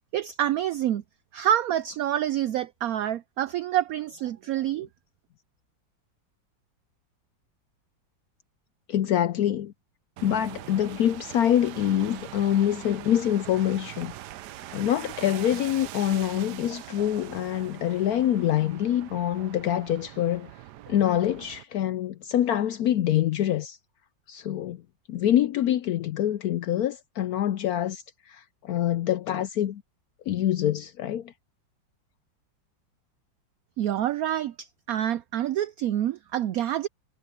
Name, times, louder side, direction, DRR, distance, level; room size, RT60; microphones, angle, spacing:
voice 1, 0.1-1.0 1.3-4.9 33.8-36.9, right 11 dB, 90° right, 0.7 m, -27 dB
voice 2, 8.9-9.7 10.2-14.1 14.7-20.5 20.9-23.8 24.3-24.8 25.1-29.8 30.3-31.3, left 11 dB, 75° left, 0.8 m, -25 dB
sound 1, 10.2-21.6, right 14 dB, 70° right, 1.1 m, -42 dB
omnidirectional pair, 2.1 m